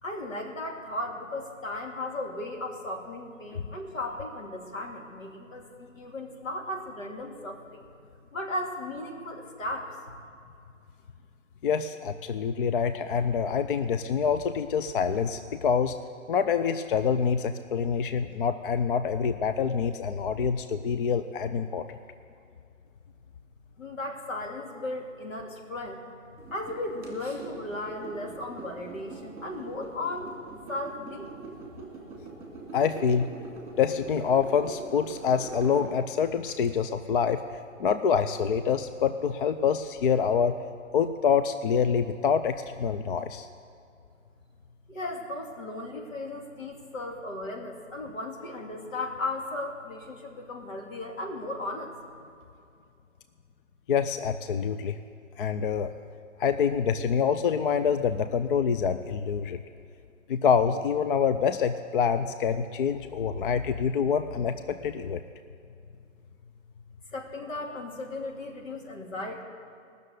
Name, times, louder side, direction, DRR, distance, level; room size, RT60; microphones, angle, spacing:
voice 1, 0.0-7.8 8.3-9.9 23.8-26.0 26.5-30.3 30.7-31.3 44.9-51.9 67.1-69.4, left 2 dB, 80° left, 1 dB, 2.7 m, -36 dB
voice 2, 11.6-15.9 16.3-21.8 32.7-33.3 33.8-37.4 37.8-40.6 40.9-43.5 53.9-55.0 55.4-55.9 56.4-59.6 60.3-65.2, left 6 dB, 45° left, 10 dB, 0.5 m, -26 dB
sound 1, 26.4-36.7, right 3 dB, 5° right, 2.1 m, -43 dB
18.0 x 6.7 x 8.1 m, 2.5 s
hypercardioid pair, 145°, 39 cm